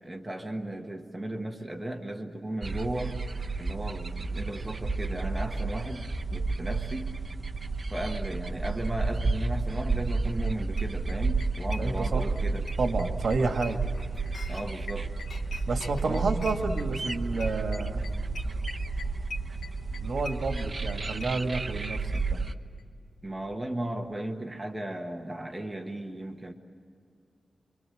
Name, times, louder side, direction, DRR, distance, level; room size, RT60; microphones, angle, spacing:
voice 1, 0.0-3.2 3.6-7.2 7.9-12.7 14.5-15.1 16.0-16.3 23.2-26.5, right 1 dB, 15° right, 3 dB, 1.4 m, -35 dB
sound 1, 2.6-22.5, right 3 dB, 30° right, 1.0 m, -31 dB
sound 2, 10.1-10.2 10.5-10.6 10.8-12.4 12.7-21.9 22.1-22.2 22.5-22.6 22.8-22.9, left 3 dB, 85° left, 1.7 m, -42 dB
voice 2, 11.8-12.2 12.8-13.9 15.7-18.0 20.0-22.5, right 3 dB, 60° right, 4 dB, 2.0 m, -30 dB
Chink clink, 13.6-14.9 15.3-19.9 20.1-20.4, left 3 dB, 60° left, 1.4 m, -51 dB
27.5 x 25.0 x 7.8 m, 2.3 s
wide cardioid pair, 165°, 0 cm